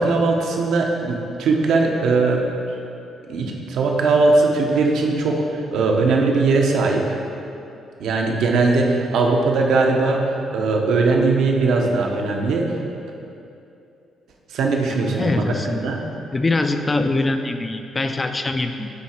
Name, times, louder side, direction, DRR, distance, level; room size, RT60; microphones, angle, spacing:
voice 1, 0.0-2.4 3.3-7.0 8.0-10.2 10.5-12.8 14.5-15.4 15.8-16.0, right 3 dB, 80° right, 1 dB, 0.8 m, -19 dB
voice 2, 15.2-15.9 16.3-18.9, left 2 dB, 25° left, 7 dB, 0.4 m, -23 dB
9.5 x 3.2 x 4.4 m, 2.7 s
cardioid pair, 90°, 0 cm